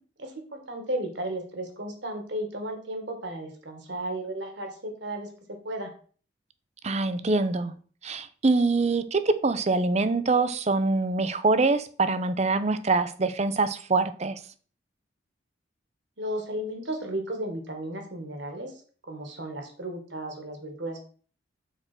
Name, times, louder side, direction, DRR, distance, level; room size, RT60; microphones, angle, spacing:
voice 1, 0.2-5.3 5.6-5.9 16.2-18.7 19.1-21.0, right 1 dB, 65° right, 1.9 m, -34 dB
voice 2, 6.8-7.7 8.0-14.4, right 3 dB, 35° right, 0.6 m, -24 dB
6.6 x 4.7 x 6.1 m
head